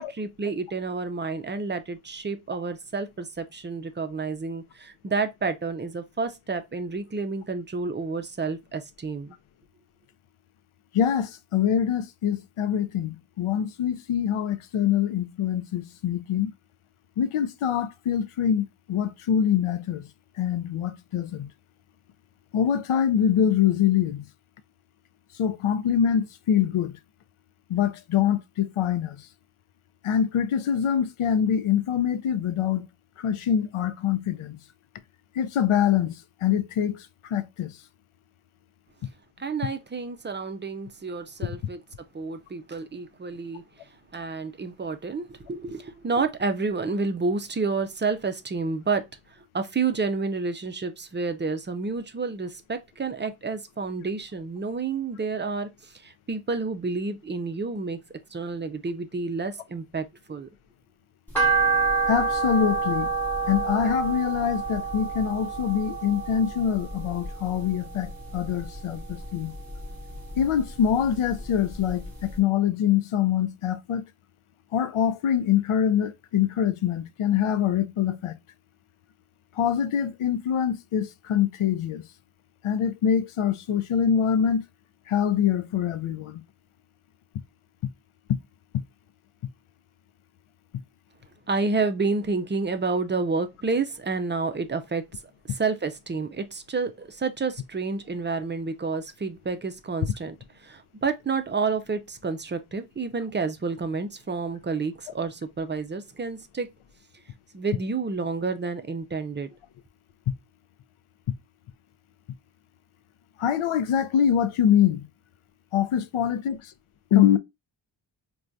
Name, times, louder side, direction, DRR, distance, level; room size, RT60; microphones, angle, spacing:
voice 1, 0.0-9.4 39.4-41.8 42.1-43.6 44.1-49.0 49.3-58.0 58.3-60.5 91.5-95.0 95.5-100.4 100.6-106.7 107.5-109.5, right 4 dB, 25° right, 0.3 m, -29 dB
voice 2, 10.9-16.5 17.2-20.1 20.4-21.5 22.5-24.3 25.3-27.0 27.7-29.3 30.0-32.9 33.2-34.6 35.3-37.8 62.1-63.1 63.5-69.5 70.4-74.0 74.7-78.4 79.5-82.1 82.6-84.6 85.1-86.4 88.3-88.4 88.7-88.8 110.3-110.4 113.4-115.1 115.7-116.7 117.1-117.4, left 9 dB, 80° left, 0.6 m, -24 dB
sound 1, 61.3-67.7 68.0-69.2 69.5-70.9 71.3-71.4 71.9-72.0 72.2-72.3, right 4 dB, 5° left, 0.9 m, -27 dB
4.4 x 2.3 x 2.5 m
wide cardioid pair, 130°, 49 cm